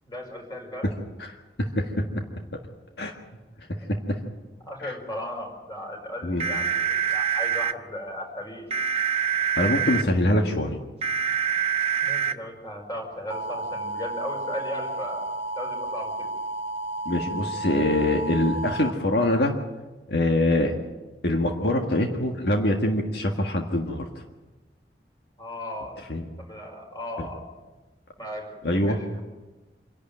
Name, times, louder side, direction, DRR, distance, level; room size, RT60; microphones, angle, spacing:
voice 1, 0.1-1.0 3.8-3.9 4.7-8.7 12.0-15.2 15.6-16.3 25.4-26.0 26.4-27.4 28.2-29.2, left 1 dB, 25° left, 1 dB, 5.0 m, -36 dB
sound 1, 6.4-7.7 8.7-10.0 11.0-12.3 13.3-18.9, right 6 dB, 35° right, 0.7 m, -28 dB
voice 2, 9.6-10.8 17.0-19.5 20.1-20.7 21.2-24.0 26.1-26.2 27.2-27.3 28.6-29.0, left 1 dB, 70° left, 2 dB, 1.7 m, -24 dB
26.5 x 11.5 x 9.0 m, 1.2 s
head